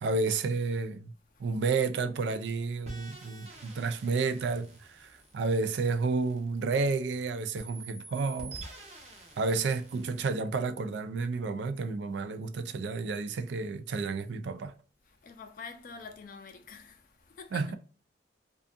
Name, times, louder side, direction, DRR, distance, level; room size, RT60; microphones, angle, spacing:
voice 1, 0.0-1.1 1.4-8.6 9.4-14.7 17.5-17.7, right 4 dB, 85° right, 0.4 m, -31 dB
sound 1, 2.9-7.1 7.6-10.3, right 3 dB, 40° right, 0.7 m, -48 dB
voice 2, 8.9-9.4 15.2-17.7, left 4 dB, 50° left, 0.4 m, -47 dB
2.6 x 2.3 x 2.3 m
head